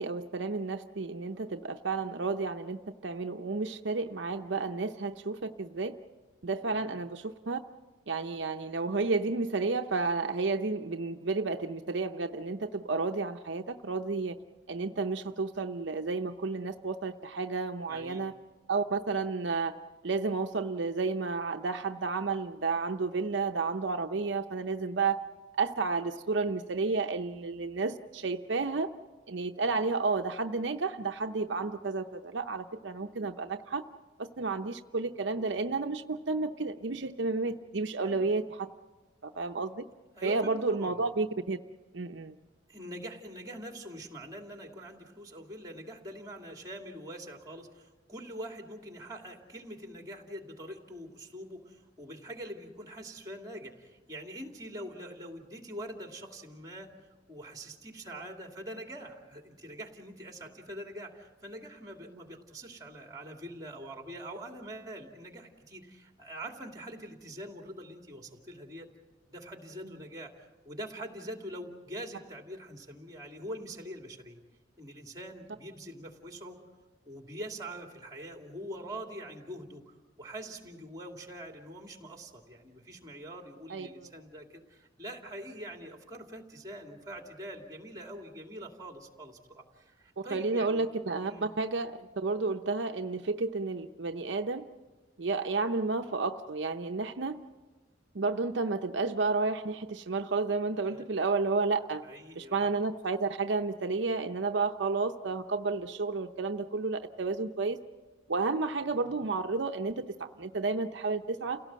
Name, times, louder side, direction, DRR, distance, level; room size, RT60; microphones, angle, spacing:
voice 1, 0.0-6.0 6.4-7.6 8.1-14.4 14.7-18.3 18.7-19.8 20.0-25.2 25.5-28.9 29.3-33.8 34.2-38.7 39.2-39.9 40.2-41.6 41.9-42.3 83.7-84.1 90.2-94.7 95.2-97.4 98.1-102.0 102.3-107.8 108.3-111.6, right 3 dB, 70° right, 5 dB, 0.7 m, -31 dB
voice 2, 17.9-18.3 38.0-38.3 40.2-41.0 42.7-56.9 57.3-68.9 69.3-74.4 74.8-76.6 77.1-90.8 91.2-91.4 100.9-101.0 102.0-102.7, right 1 dB, 20° right, 3 dB, 2.5 m, -44 dB
29.0 x 17.5 x 7.5 m, 1.3 s
head